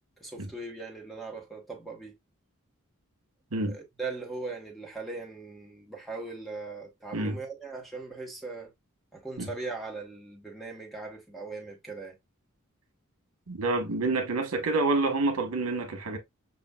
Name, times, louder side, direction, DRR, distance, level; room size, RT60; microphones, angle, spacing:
voice 1, 0.2-2.1 3.7-8.7 9.1-12.2, right 3 dB, ahead, 1.1 m, -39 dB
voice 2, 13.5-16.2, right 2 dB, 80° right, 1.2 m, -28 dB
6.8 x 2.4 x 2.2 m
head